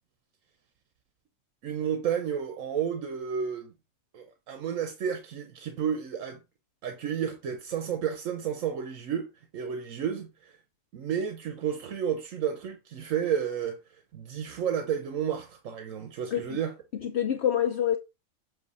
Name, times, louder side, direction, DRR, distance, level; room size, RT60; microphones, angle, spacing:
voice 1, 1.6-3.7 4.1-6.4 6.8-10.6 10.9-16.7, right 8 dB, 80° right, 1.2 m, -31 dB
voice 2, 17.0-18.0, left 10 dB, 60° left, 0.8 m, -26 dB
7.8 x 2.6 x 5.3 m
omnidirectional pair, 1.4 m